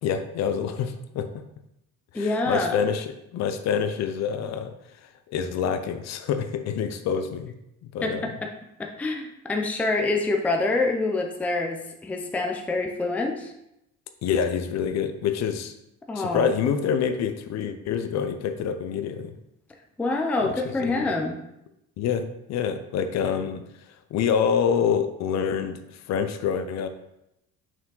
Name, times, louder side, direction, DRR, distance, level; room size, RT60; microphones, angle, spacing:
voice 1, 0.0-1.4 2.1-4.7 5.0-7.5 7.9-8.3 14.2-15.7 16.1-19.3 20.4-21.1 22.0-23.6 24.1-26.9, left 7 dB, 55° left, 9 dB, 0.6 m, -27 dB
voice 2, 2.1-2.8 8.0-8.5 8.8-13.5 16.1-16.5 20.0-21.4, left 3 dB, 5° left, 2 dB, 0.4 m, -26 dB
6.0 x 4.8 x 3.8 m, 0.83 s
cardioid pair, 165°, 32 cm